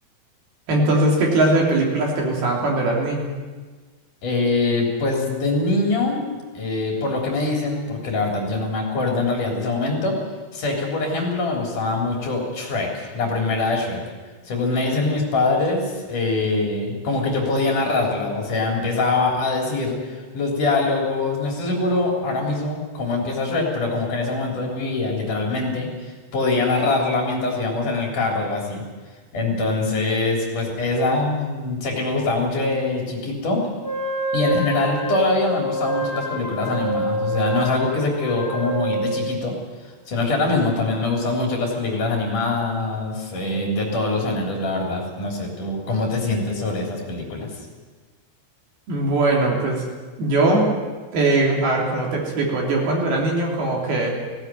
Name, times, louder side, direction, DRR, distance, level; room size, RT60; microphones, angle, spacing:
voice 1, 0.7-3.3 48.9-49.9 50.2-50.8 51.1-54.2, right 2 dB, 55° right, -1 dB, 4.9 m, -20 dB
voice 2, 4.2-6.2 6.5-10.2 10.5-14.0 14.5-25.9 26.3-28.9 29.3-33.6 34.3-39.6 40.1-47.5, left 3 dB, 45° left, 0 dB, 4.7 m, -23 dB
Wind instrument woodwind instrument, 33.8-39.4, right 1 dB, 20° left, 4.7 m, -27 dB
19.5 x 17.0 x 9.2 m, 1.4 s
omnidirectional pair, 5.4 m